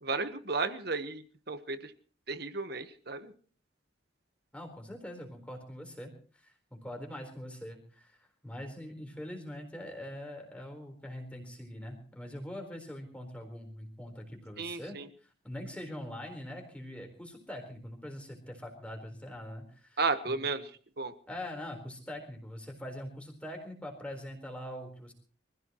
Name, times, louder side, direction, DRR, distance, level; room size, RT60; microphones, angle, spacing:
voice 1, 0.0-1.9 2.3-3.3 14.6-15.1 20.0-20.7 21.0-21.1, right 4 dB, 50° right, 10 dB, 1.2 m, -33 dB
voice 2, 4.5-20.0 20.2-20.4 21.3-25.1, left 1 dB, 5° left, 3 dB, 4.1 m, -43 dB
25.0 x 15.5 x 3.1 m, 0.43 s
head